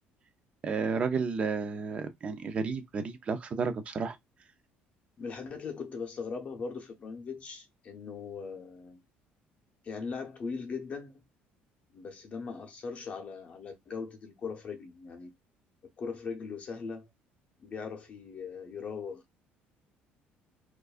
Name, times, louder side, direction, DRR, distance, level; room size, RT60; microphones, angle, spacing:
voice 1, 0.6-4.2, right 5 dB, 30° right, 0.6 m, -32 dB
voice 2, 5.2-9.0 9.8-11.1 11.9-15.3 16.0-17.1 17.6-19.2, left 5 dB, 35° left, 0.7 m, -39 dB
4.5 x 2.5 x 2.4 m
cardioid pair, 150°, 4 cm